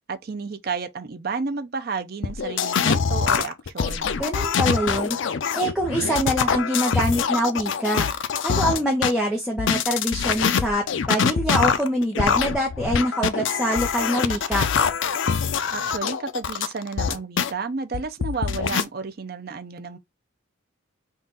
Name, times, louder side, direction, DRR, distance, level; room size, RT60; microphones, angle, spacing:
voice 1, 0.1-4.1 15.7-20.0, right 4 dB, 45° right, 0.5 m, -31 dB
sound 1, 2.2-9.1 9.6-17.5 17.9-18.8, left 6 dB, 60° left, 0.5 m, -24 dB
voice 2, 4.2-5.2 5.5-8.1 8.4-14.6, equal, ahead, 0.8 m, -24 dB
3.8 x 2.4 x 3.9 m
head